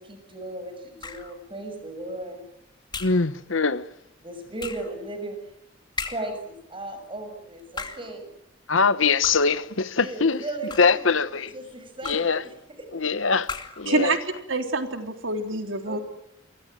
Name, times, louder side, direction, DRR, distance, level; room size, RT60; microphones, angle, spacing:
voice 1, 0.0-2.4 4.2-5.4 6.1-8.3 10.0-13.1 13.9-14.1 15.9-16.0, right 2 dB, 25° right, 6.6 m, -36 dB
sound 1, 1.0-1.4 2.9-3.3 4.6-5.0 6.0-6.4 7.6-8.2 9.2-9.6 10.5-11.1 12.0-12.4 13.4-13.9, left 4 dB, 20° left, 2.5 m, -36 dB
voice 2, 3.0-3.9 8.7-10.4 10.8-11.5 12.1-12.4 12.9-13.5 13.8-14.1, left 4 dB, 85° left, 1.2 m, -22 dB
voice 3, 13.9-14.2 14.5-16.0, right 3 dB, 85° right, 3.6 m, -26 dB
29.0 x 23.5 x 7.6 m
head